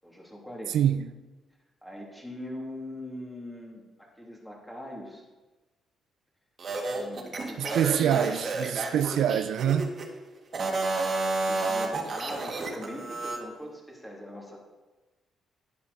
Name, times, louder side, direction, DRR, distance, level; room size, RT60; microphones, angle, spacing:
voice 1, 0.0-0.8 1.8-5.2 6.9-8.3 8.6-9.4 11.4-14.6, left 1 dB, 5° left, 3.0 m, -41 dB
voice 2, 0.7-1.1 7.6-9.9, right 9 dB, 80° right, 0.5 m, -25 dB
sound 1, 6.6-10.1 10.5-13.4, right 3 dB, 45° right, 2.0 m, -31 dB
11.0 x 10.5 x 4.3 m
cardioid pair, 90°, 0 cm